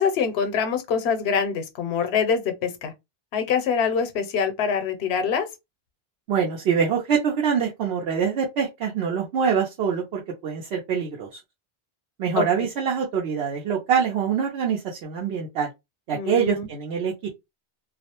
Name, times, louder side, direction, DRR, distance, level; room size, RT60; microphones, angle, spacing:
voice 1, 0.0-2.9 3.3-5.5 12.3-12.7 16.1-16.7, left 6 dB, 90° left, 0.9 m, -24 dB
voice 2, 6.3-11.4 12.2-15.7 16.1-17.1, right 7 dB, 85° right, 0.8 m, -24 dB
2.3 x 2.0 x 2.8 m
omnidirectional pair, 1.0 m